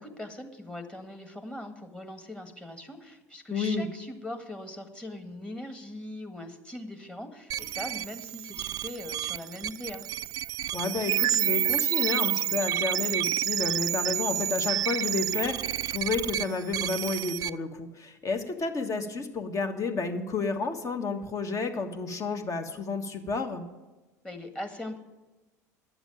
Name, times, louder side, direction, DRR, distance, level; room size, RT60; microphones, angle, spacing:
voice 1, 0.0-10.1 24.2-25.0, left 1 dB, 10° left, 5 dB, 1.8 m, -41 dB
voice 2, 3.5-3.9 10.7-23.6, left 4 dB, 35° left, 5 dB, 1.6 m, -31 dB
sound 1, 7.5-17.5, right 12 dB, 45° right, 0.4 m, -29 dB
11.0 x 7.0 x 8.9 m, 1.1 s
hypercardioid pair, 75°, 9 cm